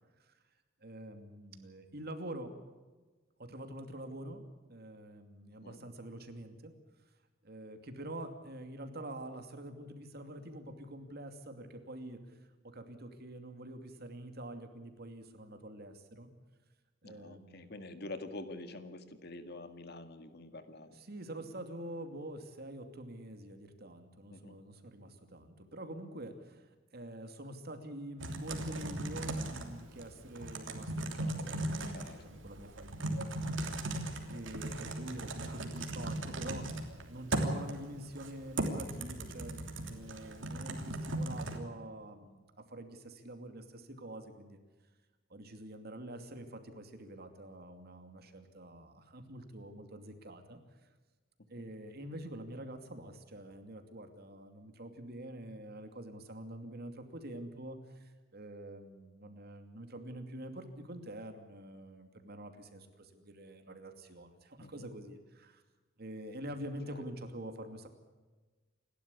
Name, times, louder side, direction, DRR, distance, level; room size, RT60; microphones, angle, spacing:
voice 1, 0.8-2.5 3.4-4.4 4.7-6.7 7.4-16.3 17.0-17.8 20.9-33.6 34.3-36.7 37.1-44.6 45.3-50.9 51.5-65.6 66.0-67.9, right 1 dB, 55° right, 7 dB, 2.6 m, -46 dB
voice 2, 17.0-21.0 24.3-24.6 31.9-32.2 64.6-64.9 66.9-67.0, left 2 dB, 55° left, 9 dB, 1.9 m, -46 dB
Typing, 28.2-41.6, right 1 dB, 70° right, 3.1 m, -38 dB
28.5 x 12.5 x 8.4 m, 1.3 s
head